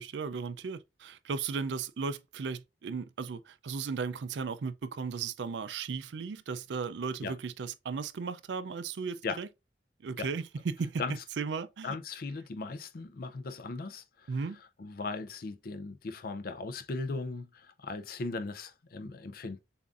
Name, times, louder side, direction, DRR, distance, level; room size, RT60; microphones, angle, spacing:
voice 1, 0.0-9.5 10.0-11.0 11.4-12.0 14.3-14.6, right 5 dB, 80° right, 0.4 m, -36 dB
voice 2, 11.8-14.3 14.8-19.6, left 3 dB, 55° left, 0.5 m, -38 dB
7.0 x 2.6 x 2.4 m
head